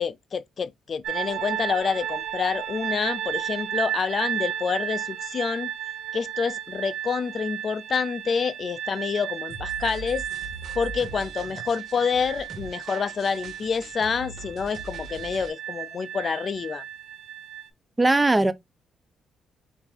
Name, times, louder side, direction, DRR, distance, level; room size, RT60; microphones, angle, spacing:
voice 1, 0.0-5.7 6.1-10.2 10.8-16.8, left 6 dB, 45° left, 0.4 m, -28 dB
sound 1, 1.0-17.7, right 11 dB, 85° right, 0.7 m, -34 dB
sound 2, 9.5-15.5, right 3 dB, 60° right, 1.3 m, -41 dB
voice 2, 18.0-18.5, right 2 dB, 15° right, 0.5 m, -19 dB
4.5 x 2.6 x 3.9 m
cardioid pair, 90°, 0 cm